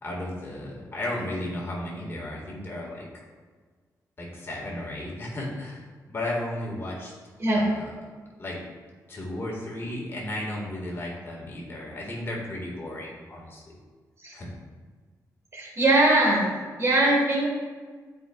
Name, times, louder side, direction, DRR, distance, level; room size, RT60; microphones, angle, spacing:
voice 1, 0.0-3.1 4.2-7.1 7.5-7.9 8.4-8.6 9.1-13.8 14.3-14.5, left 1 dB, 35° left, -3 dB, 1.8 m, -34 dB
voice 2, 15.5-16.4 16.8-17.5, right 2 dB, 40° right, -2 dB, 1.6 m, -21 dB
11.5 x 4.9 x 2.4 m, 1.5 s
wide cardioid pair, 120°, 7 cm